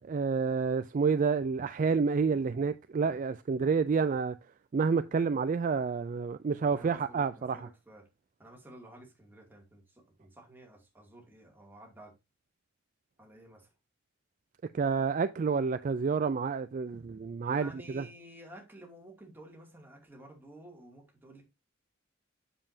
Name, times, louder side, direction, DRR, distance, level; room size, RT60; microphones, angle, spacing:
voice 1, 0.0-4.4 4.7-7.6 14.7-18.0, right 5 dB, 40° right, 0.3 m, -29 dB
voice 2, 6.7-8.1 8.4-12.1 13.2-13.7 17.4-21.4, right 1 dB, 10° right, 2.4 m, -52 dB
7.5 x 7.0 x 2.7 m
head